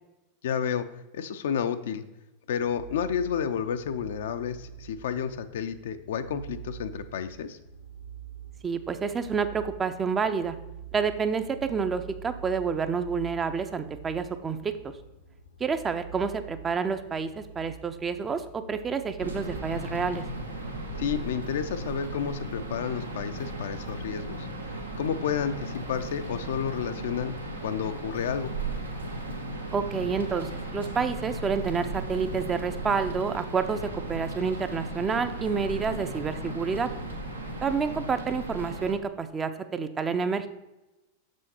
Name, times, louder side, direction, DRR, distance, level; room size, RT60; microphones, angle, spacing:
voice 1, 0.4-0.9 1.1-2.0 2.5-7.6 21.0-24.5 25.0-27.3 27.6-28.5, left 8 dB, 60° left, 10 dB, 0.5 m, -31 dB
sound 1, 2.6-19.8, right 8 dB, 75° left, 0.8 m, -46 dB
voice 2, 8.6-10.6 10.9-14.9 15.6-20.2 29.7-36.9 37.6-40.5, right 5 dB, 20° right, 9 dB, 0.5 m, -29 dB
sound 2, 19.2-38.9, right 2 dB, 85° right, 1.0 m, -36 dB
6.4 x 6.2 x 4.2 m, 0.99 s
figure-of-eight pair, 90°, 0 cm